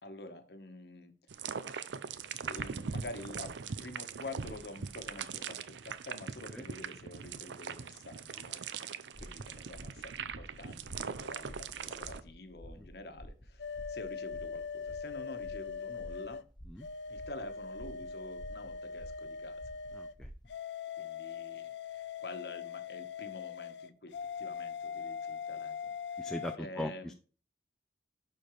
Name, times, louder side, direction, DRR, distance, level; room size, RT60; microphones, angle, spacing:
voice 1, 0.0-1.2 2.4-8.7 9.2-16.4 17.1-19.8 21.0-26.3 26.6-27.1, left 2 dB, 65° left, 7 dB, 1.1 m, -48 dB
sound 1, 1.3-12.2, right 6 dB, 90° right, 0.5 m, -41 dB
sound 2, 9.1-20.5, equal, 25° left, 1.1 m, -51 dB
sound 3, 13.6-16.4 16.8-20.1 20.5-26.6, left 6 dB, 85° left, 0.5 m, -41 dB
voice 2, 19.9-20.3 26.2-27.1, left 1 dB, 5° left, 4 dB, 0.4 m, -40 dB
11.5 x 4.4 x 3.1 m, 0.37 s
head